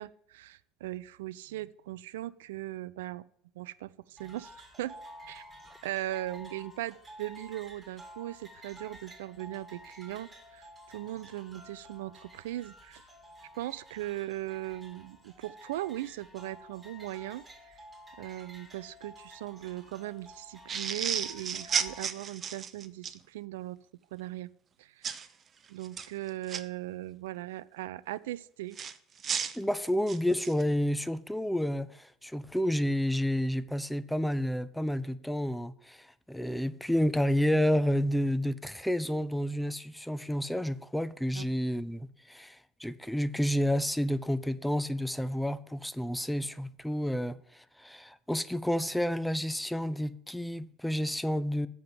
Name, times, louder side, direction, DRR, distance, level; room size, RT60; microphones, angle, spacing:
voice 1, 0.0-3.2 3.6-5.0 5.3-5.4 5.8-13.0 13.5-17.8 18.2-23.8 24.1-24.5 24.8-25.1 25.7-28.8 41.3-41.6, right 15 dB, 70° right, 0.3 m, -39 dB
sound 1, 4.2-22.0, equal, 20° right, 1.8 m, -51 dB
sound 2, 20.7-23.2 25.0-25.3 25.8-26.6 28.7-30.6, right 7 dB, 35° right, 0.7 m, -33 dB
voice 2, 29.6-51.7, equal, 5° left, 0.5 m, -30 dB
7.6 x 5.3 x 7.5 m
hypercardioid pair, 70°, 0 cm